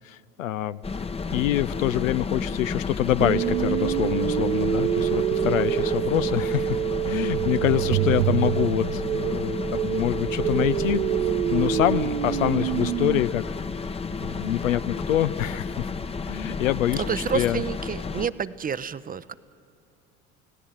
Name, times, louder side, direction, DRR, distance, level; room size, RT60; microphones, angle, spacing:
voice 1, 0.0-1.1 1.3-6.8 7.1-13.4 14.2-15.9 16.2-17.0 17.3-17.6, left 13 dB, 80° left, 14 dB, 0.7 m, -26 dB
sound 1, 0.8-18.3, left 4 dB, 15° left, 0.9 m, -32 dB
sound 2, 3.2-13.2, right 12 dB, 85° right, 0.6 m, -26 dB
voice 2, 16.9-19.3, right 6 dB, 20° right, 15 dB, 0.7 m, -29 dB
29.5 x 17.0 x 8.9 m, 2.5 s
hypercardioid pair, 70°, 39 cm